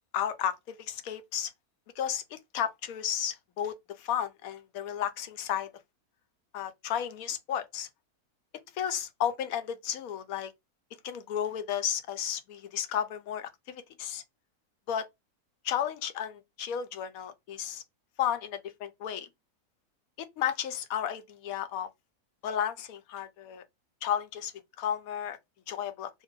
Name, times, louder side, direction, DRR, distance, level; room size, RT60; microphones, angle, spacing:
voice 1, 0.1-1.5 2.0-5.7 6.5-7.9 8.7-10.5 11.0-14.2 14.9-15.1 15.6-17.8 18.2-19.3 20.2-21.9 22.4-23.6 24.0-24.5 24.8-25.4 25.7-26.1, left 9 dB, 75° left, 1.0 m, -33 dB
2.7 x 2.2 x 3.6 m
omnidirectional pair, 1.6 m